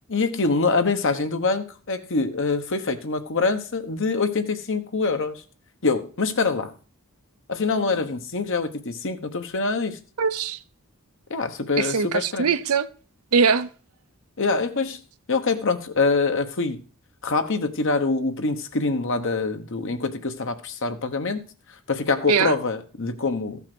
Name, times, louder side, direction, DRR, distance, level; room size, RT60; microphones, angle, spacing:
voice 1, 0.1-5.4 5.8-6.7 7.5-10.0 11.3-12.5 14.4-15.0 15.3-16.8 17.2-21.4 21.9-23.6, left 3 dB, 60° left, 1.2 m, -25 dB
voice 2, 10.2-10.6 11.8-12.9 13.3-13.7 22.3-22.5, right 5 dB, 80° right, 0.7 m, -21 dB
14.0 x 5.8 x 6.1 m
head